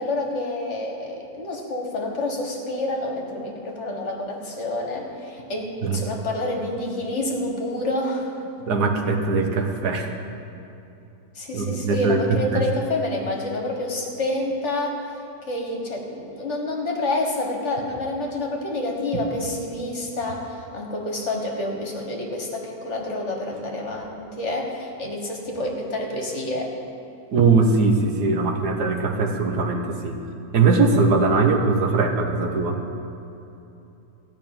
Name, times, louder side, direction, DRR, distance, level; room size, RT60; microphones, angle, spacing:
voice 1, 0.0-8.3 11.4-15.0 15.5-26.7, left 2 dB, 45° left, 0 dB, 1.7 m, -28 dB
voice 2, 8.7-10.1 11.5-12.6 27.3-30.2 30.5-32.8, right 4 dB, 75° right, 3 dB, 1.6 m, -21 dB
15.0 x 5.8 x 8.9 m, 2.9 s
omnidirectional pair, 1.8 m